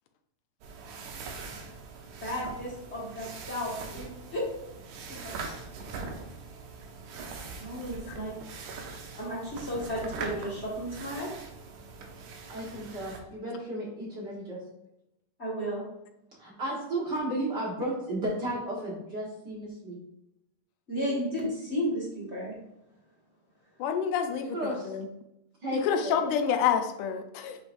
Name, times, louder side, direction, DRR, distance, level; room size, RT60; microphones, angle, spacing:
sound 1, 0.6-13.2, right 4 dB, 75° right, 2.1 m, -42 dB
voice 1, 2.2-4.4 5.2-5.3 7.6-8.3 9.2-11.3 15.4-15.9 20.9-22.5, equal, 35° left, -6 dB, 1.1 m, -33 dB
voice 2, 12.5-14.6 16.4-20.0 24.4-24.9 25.6-26.3, right 1 dB, 50° right, -4 dB, 1.4 m, -33 dB
voice 3, 23.8-25.1 25.7-27.6, left 7 dB, 80° left, 6 dB, 2.0 m, -28 dB
8.3 x 5.0 x 2.6 m, 0.84 s
omnidirectional pair, 3.8 m